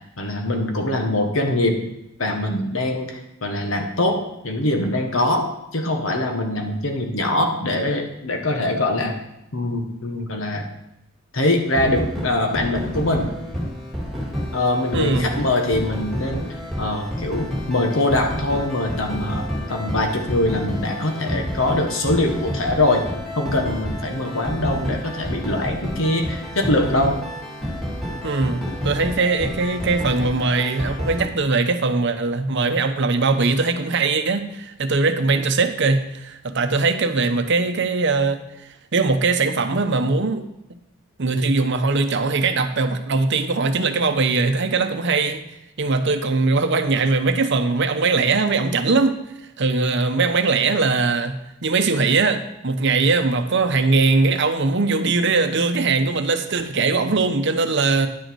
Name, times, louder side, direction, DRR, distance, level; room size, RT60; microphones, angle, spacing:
voice 1, 0.2-1.8 2.2-9.2 9.5-10.7 11.3-13.3 14.5-23.1 23.3-27.2, left 1 dB, 70° left, 4 dB, 1.4 m, -23 dB
sound 1, 11.6-31.3, equal, ahead, 2.0 m, -29 dB
voice 2, 14.9-15.3 28.2-38.4 38.9-40.8 41.2-45.4 45.8-49.2 49.6-51.4 51.6-58.1, right 3 dB, 55° right, 8 dB, 0.8 m, -21 dB
10.5 x 6.6 x 4.7 m, 0.87 s
head